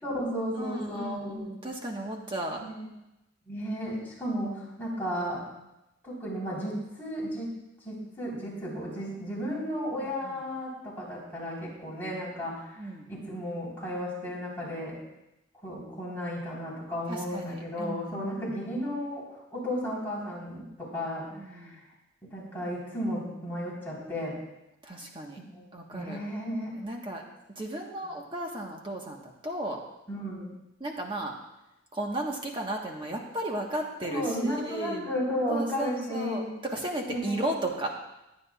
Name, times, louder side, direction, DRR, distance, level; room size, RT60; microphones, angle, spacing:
voice 1, 0.0-1.5 2.6-2.8 3.5-5.4 6.0-7.5 7.8-12.7 13.1-15.0 15.6-21.8 22.2-24.4 25.5-25.6 25.9-26.8 30.1-30.5 34.0-36.5 37.1-37.4, equal, 10° left, -7 dB, 4.1 m, -34 dB
voice 2, 0.5-2.6 10.0-10.4 12.8-13.1 17.1-18.4 21.3-21.8 24.8-25.4 25.7-26.2 26.8-27.2 27.5-29.8 30.8-31.3 31.9-35.1 35.5-37.9, right 1 dB, 25° right, 0 dB, 1.4 m, -35 dB
22.5 x 9.5 x 2.4 m, 0.92 s
head